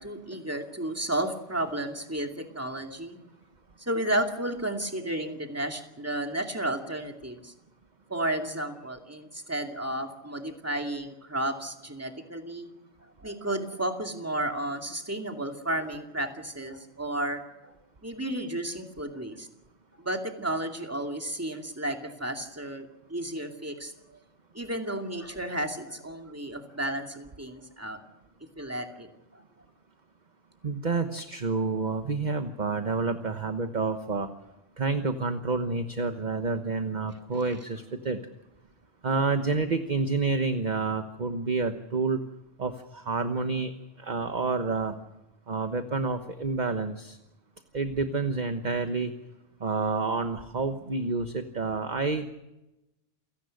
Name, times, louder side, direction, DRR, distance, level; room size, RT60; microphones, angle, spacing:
voice 1, 0.0-3.2 3.8-7.5 8.1-12.7 13.2-17.8 18.0-19.5 20.0-24.2 24.5-28.0 28.6-29.1, right 1 dB, 10° right, 4 dB, 2.5 m, -32 dB
voice 2, 30.6-34.3 34.8-38.2 39.0-42.2 42.6-44.9 45.5-47.2 47.7-49.1 49.6-52.3, right 4 dB, 40° right, 8 dB, 1.3 m, -29 dB
28.5 x 17.5 x 6.6 m, 0.97 s
omnidirectional pair, 1.2 m